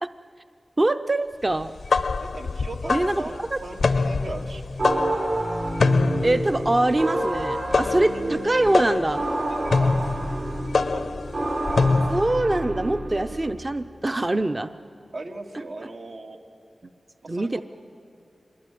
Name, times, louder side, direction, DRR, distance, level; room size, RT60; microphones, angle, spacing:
voice 1, 0.8-1.7 2.9-3.2 3.5-3.6 6.2-9.2 12.1-14.7 17.3-17.6, right 2 dB, 30° right, 9 dB, 0.6 m, -23 dB
sound 1, 1.6-12.4, left 4 dB, 85° left, 0.7 m, -25 dB
voice 2, 2.2-4.7 9.5-10.3 10.7-11.0 15.1-16.4 17.2-17.6, right 2 dB, 85° right, 2 dB, 2.4 m, -38 dB
sound 2, 4.8-13.5, right 1 dB, 60° right, 6.4 m, -29 dB
25.0 x 21.5 x 9.3 m, 2.5 s
wide cardioid pair, 100°, 0 cm